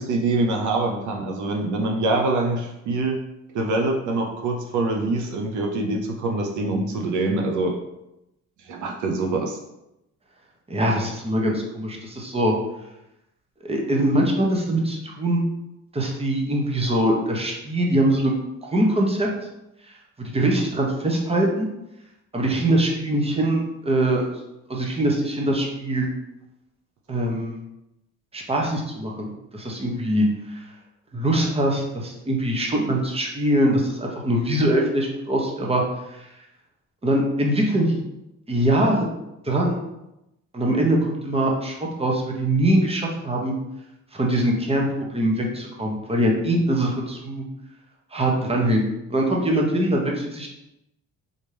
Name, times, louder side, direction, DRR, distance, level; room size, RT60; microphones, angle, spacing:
voice 1, 0.0-3.2 3.5-7.7 8.6-9.6, right 2 dB, 75° right, 1 dB, 0.7 m, -24 dB
voice 2, 10.7-12.5 13.6-15.4 15.9-18.3 18.6-19.3 20.2-21.7 22.3-24.4 24.7-26.1 27.1-27.6 28.3-30.6 31.1-35.8 36.1-36.2 37.0-38.0 38.5-39.1 39.4-39.8 40.5-43.6 44.1-47.4 48.1-50.5, right 1 dB, 20° right, -1 dB, 1.0 m, -22 dB
4.0 x 3.5 x 3.4 m, 0.89 s
cardioid pair, 90°, 30 cm